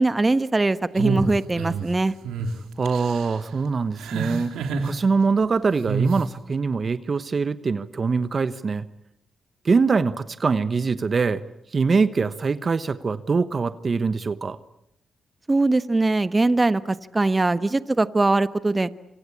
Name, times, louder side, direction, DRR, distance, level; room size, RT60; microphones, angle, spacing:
voice 1, 0.0-2.1 15.5-18.9, right 2 dB, 30° right, 14 dB, 1.2 m, -21 dB
sound 1, 0.9-1.9 2.2-2.5 2.9-3.3 4.0-4.9 5.9-6.2, right 5 dB, 90° right, 3.2 m, -27 dB
voice 2, 2.8-8.8 9.6-11.4 11.7-14.6, right 4 dB, 50° right, 14 dB, 1.1 m, -23 dB
27.0 x 26.0 x 8.5 m, 0.80 s
supercardioid pair, 50°, 0 cm